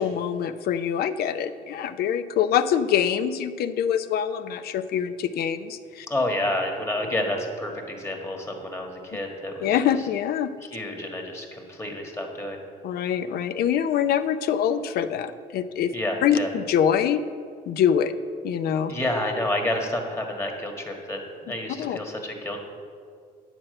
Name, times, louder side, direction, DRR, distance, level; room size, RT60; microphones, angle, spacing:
voice 1, 0.0-6.1 9.6-10.5 12.8-15.9 16.2-17.2 17.7-18.1 18.4-18.9 21.8-22.0, left 9 dB, 65° left, 12 dB, 0.5 m, -24 dB
voice 2, 6.1-9.7 10.7-12.6 15.9-16.5 18.9-22.6, left 1 dB, 15° left, 2 dB, 1.5 m, -29 dB
10.0 x 4.4 x 7.6 m, 2.2 s
cardioid pair, 110°, 17 cm